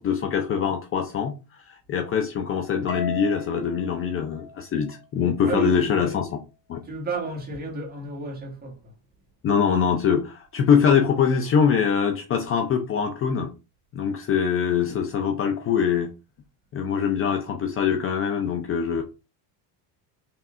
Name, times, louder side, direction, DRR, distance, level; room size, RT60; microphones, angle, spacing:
voice 1, 0.0-6.4 6.7-6.8 9.4-13.5 13.9-16.1 16.7-19.0, left 7 dB, 30° left, 0.5 m, -23 dB
Harp, 2.9-5.3, left 4 dB, 70° left, 1.5 m, -37 dB
voice 2, 5.4-6.2 6.8-8.9, right 4 dB, 20° right, 1.8 m, -32 dB
5.6 x 3.1 x 2.5 m
cardioid pair, 140°, 42 cm